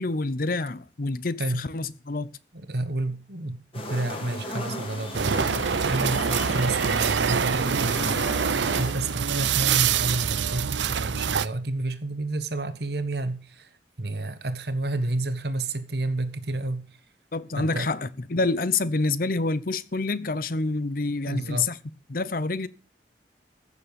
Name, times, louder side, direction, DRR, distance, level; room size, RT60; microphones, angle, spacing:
voice 1, 0.0-2.4 17.3-21.8 22.1-22.7, left 3 dB, 50° left, 0.7 m, -27 dB
voice 2, 2.5-16.9 17.6-17.9 21.3-21.7, right 2 dB, 60° right, 1.4 m, -30 dB
sound 1, 3.7-8.9, left 1 dB, 30° left, 3.2 m, -35 dB
sound 2, 5.1-11.5, right 7 dB, 75° right, 0.6 m, -25 dB
15.0 x 7.0 x 6.9 m
head